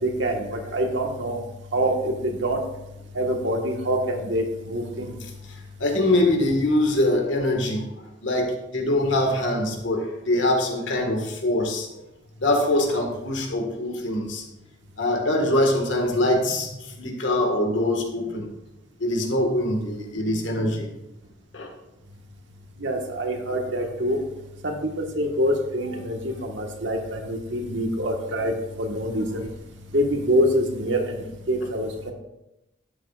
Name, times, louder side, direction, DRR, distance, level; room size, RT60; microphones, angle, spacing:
voice 1, 0.0-1.4 1.7-2.6 3.1-5.2 22.8-24.2 24.6-29.5 29.9-32.1, equal, 75° right, 2 dB, 1.5 m, -25 dB
voice 2, 5.8-7.9 8.2-11.9 12.4-14.4 15.0-18.5 19.0-20.9 21.5-21.7 27.0-27.1, left 1 dB, 80° left, 2 dB, 1.7 m, -23 dB
12.5 x 8.9 x 2.5 m, 0.90 s
head